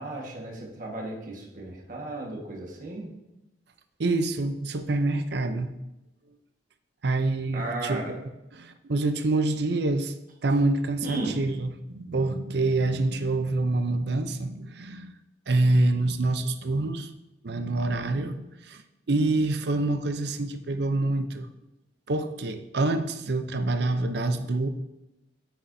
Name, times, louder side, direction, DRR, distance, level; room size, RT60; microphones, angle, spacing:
voice 1, 0.0-3.1 7.5-8.1 11.0-11.3, right 2 dB, 45° right, -1 dB, 1.4 m, -34 dB
voice 2, 4.0-5.7 7.0-8.2 8.6-10.2 10.4-15.1 15.5-17.1 17.4-18.4 18.6-18.8 19.1-21.5 22.1-24.7, right 2 dB, 60° right, 9 dB, 0.6 m, -26 dB
9.2 x 8.5 x 2.7 m, 0.93 s
head